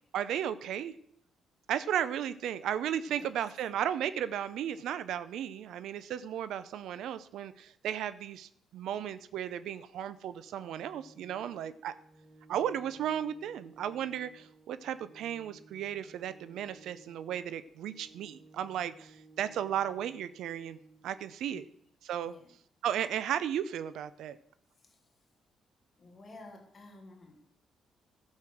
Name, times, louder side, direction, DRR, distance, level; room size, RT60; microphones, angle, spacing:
voice 1, 0.1-0.9 1.7-11.9 12.5-20.8 21.0-21.6 22.0-22.4 22.8-24.4, right 10 dB, 80° right, 14 dB, 0.6 m, -35 dB
voice 2, 3.1-3.7 21.5-21.8 22.2-22.6 24.7-25.3 25.9-27.6, left 2 dB, 35° left, 3 dB, 2.4 m, -54 dB
Organ, 10.3-21.3, right 3 dB, 20° right, 4.4 m, -58 dB
12.0 x 6.4 x 6.3 m, 0.67 s
cardioid pair, 90°, 0 cm